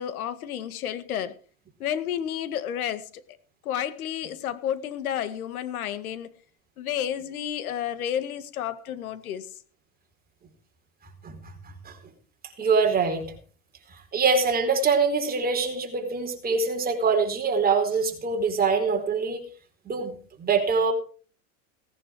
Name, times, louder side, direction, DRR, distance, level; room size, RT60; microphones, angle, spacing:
voice 1, 0.0-1.3 1.8-3.1 3.6-6.3 6.8-9.5, left 10 dB, 85° left, 1.9 m, -31 dB
voice 2, 12.6-13.3 13.9-19.4 19.8-20.9, right 4 dB, 20° right, 4.5 m, -24 dB
18.5 x 11.0 x 4.8 m
supercardioid pair, 120°, 43 cm